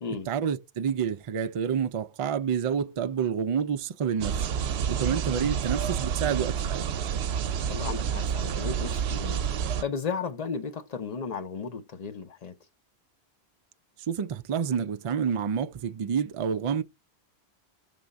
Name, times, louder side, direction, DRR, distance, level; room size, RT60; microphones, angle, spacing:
voice 1, 0.3-4.5 4.9-6.8 14.1-16.8, right 7 dB, 60° right, 0.3 m, -28 dB
sound 1, 4.2-9.8, right 8 dB, 80° right, 0.8 m, -29 dB
voice 2, 7.7-12.6, left 5 dB, 45° left, 0.7 m, -35 dB
6.6 x 3.5 x 5.2 m
omnidirectional pair, 1.1 m